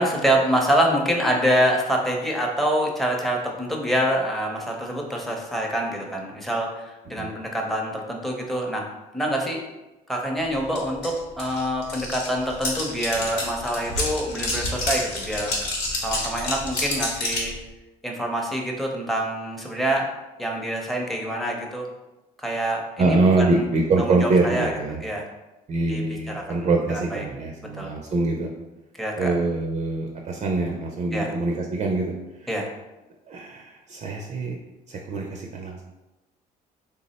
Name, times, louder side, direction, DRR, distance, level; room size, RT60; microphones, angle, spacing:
voice 1, 0.0-8.8 9.1-9.6 10.1-15.5 16.0-17.5 18.0-20.1 20.4-21.9 22.4-23.6 24.0-24.7 25.0-25.2 25.9-26.0 26.3-27.3 27.8-27.9 29.0-29.3 31.1-31.3 32.5-32.7, right 1 dB, ahead, 0 dB, 0.6 m, -26 dB
sound 1, 10.7-10.8 11.0-17.5, left 2 dB, 85° left, 1.1 m, -28 dB
voice 2, 23.0-25.0 25.7-28.5 29.2-32.6 33.3-34.6 34.9-35.8, right 3 dB, 40° right, 1 dB, 0.4 m, -24 dB
3.4 x 2.0 x 4.0 m, 1.0 s
cardioid pair, 110°, 17 cm